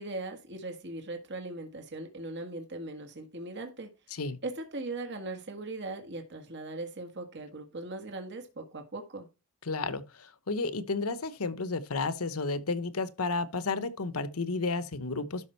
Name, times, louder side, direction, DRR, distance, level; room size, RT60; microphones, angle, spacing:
voice 1, 0.0-3.9 4.4-9.3, right 2 dB, 50° right, 1.7 m, -39 dB
voice 2, 9.7-15.5, left 3 dB, 80° left, 1.0 m, -32 dB
12.0 x 5.2 x 4.5 m
head